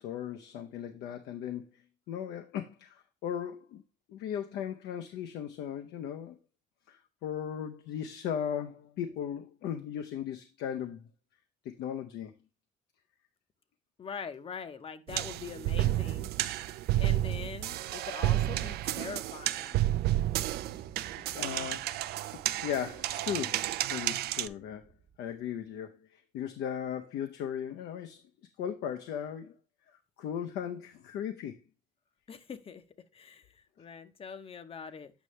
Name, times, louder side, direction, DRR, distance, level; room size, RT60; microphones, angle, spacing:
voice 1, 0.0-1.8 2.1-3.8 4.1-6.4 6.9-11.1 11.6-12.3 16.8-17.0 21.2-22.0 22.6-24.9 25.2-28.2 28.6-29.5 29.9-31.6, left 9 dB, 80° left, 0.6 m, -37 dB
voice 2, 14.0-16.3 17.0-19.8 32.3-32.8 33.1-35.1, left 6 dB, 35° left, 0.7 m, -43 dB
sound 1, 15.1-24.5, right 14 dB, 70° right, 0.4 m, -31 dB
Thunder, 20.3-25.4, right 6 dB, 55° right, 1.1 m, -55 dB
8.2 x 5.5 x 3.1 m
cardioid pair, 110°, 17 cm